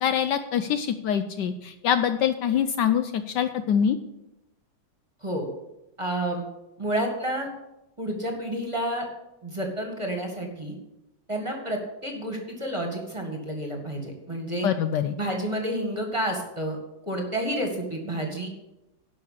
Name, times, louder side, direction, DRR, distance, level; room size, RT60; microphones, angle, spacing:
voice 1, 0.0-4.0 14.6-15.2, left 8 dB, 75° left, 9 dB, 1.1 m, -24 dB
voice 2, 6.0-6.4 6.8-7.5 8.0-9.1 9.4-10.8 11.3-14.7 15.2-16.8 17.0-18.5, right 1 dB, 15° right, 2 dB, 1.7 m, -30 dB
11.5 x 5.5 x 7.9 m, 0.93 s
omnidirectional pair, 2.1 m